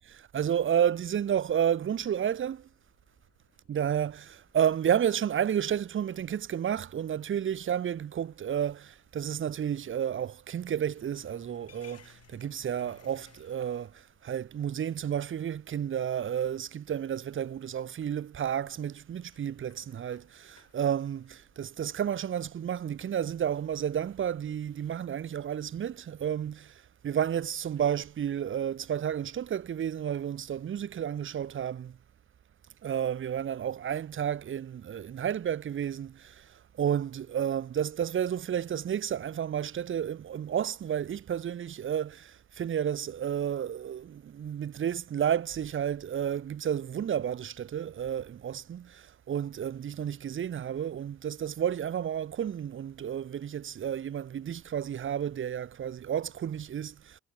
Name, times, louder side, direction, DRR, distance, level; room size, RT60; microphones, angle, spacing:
voice 1, 0.1-2.7 3.7-26.7 27.0-32.0 32.8-36.5 36.8-57.2, right 9 dB, 40° right, 0.8 m, -31 dB
sound 1, 2.4-21.7, left 8 dB, 55° left, 5.2 m, -64 dB
cardioid pair, 90°, 30 cm